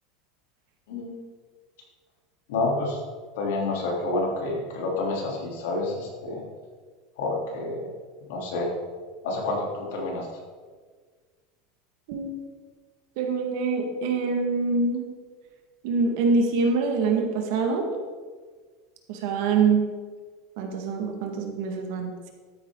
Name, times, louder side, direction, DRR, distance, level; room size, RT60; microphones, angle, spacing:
voice 1, 2.5-3.0 3.3-6.4 7.2-7.9 8.3-8.7 9.2-10.3, left 2 dB, 80° left, -1 dB, 3.4 m, -28 dB
voice 2, 12.1-12.4 13.2-15.1 15.8-17.9 19.1-19.9 20.6-22.3, right 4 dB, 60° right, 3 dB, 1.9 m, -25 dB
13.0 x 8.7 x 3.9 m, 1.5 s
supercardioid pair, 165°, 0 cm